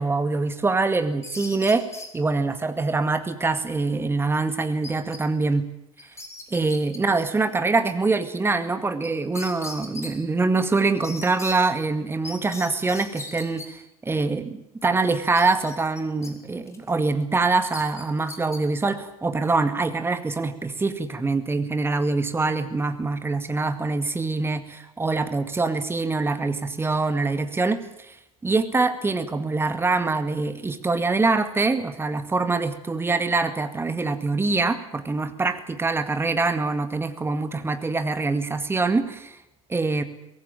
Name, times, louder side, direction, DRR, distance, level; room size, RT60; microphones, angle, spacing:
voice 1, 0.0-1.9 2.1-5.7 6.5-28.2 28.4-39.4 39.7-40.0, right 3 dB, 10° right, 9 dB, 2.0 m, -24 dB
sound 1, 0.9-2.1 4.8-5.2 5.5-5.6 6.0-7.0 9.0-9.1 9.4-10.1 11.0-11.6 12.2-13.7 15.4-16.3 16.7-16.9 17.6-18.6, left 3 dB, 15° left, 3.8 m, -38 dB
23.5 x 18.0 x 9.1 m, 0.86 s
figure-of-eight pair, 80°, 19 cm